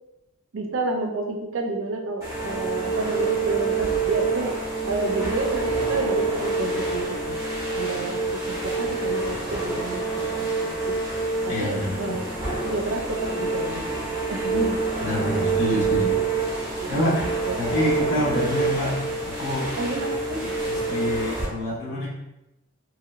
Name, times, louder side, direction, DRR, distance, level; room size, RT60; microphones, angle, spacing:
voice 1, 0.5-4.6 4.8-7.4 7.7-11.0 11.4-12.2 12.6-14.8 15.3-15.6 16.8-17.6 19.8-20.6, right 2 dB, 85° right, 3 dB, 0.5 m, -30 dB
sound 1, 2.2-21.5, right 3 dB, 15° right, 1.4 m, -27 dB
voice 2, 11.5-12.3 15.0-16.4 16.9-17.2 17.5-19.7 20.7-22.1, left 1 dB, 40° left, -8 dB, 1.4 m, -27 dB
2.9 x 2.9 x 2.4 m, 0.93 s
head